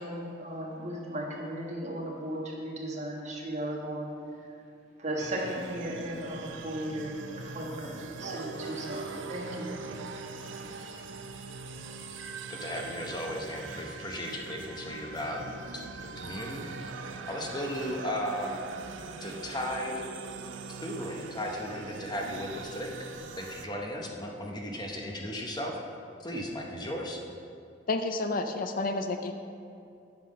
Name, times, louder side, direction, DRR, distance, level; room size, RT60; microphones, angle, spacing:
voice 1, 0.0-4.1 5.0-9.7, right 1 dB, 40° right, -2 dB, 1.5 m, -36 dB
sound 1, 5.2-23.7, right 4 dB, 85° right, 0.6 m, -42 dB
voice 2, 12.5-16.6 17.3-18.6 19.2-20.1 20.8-23.0 23.4-25.8 26.2-27.2, equal, 20° left, 0 dB, 0.9 m, -36 dB
voice 3, 27.9-29.3, left 3 dB, 50° left, 7 dB, 0.4 m, -30 dB
9.2 x 5.8 x 5.3 m, 2.5 s
head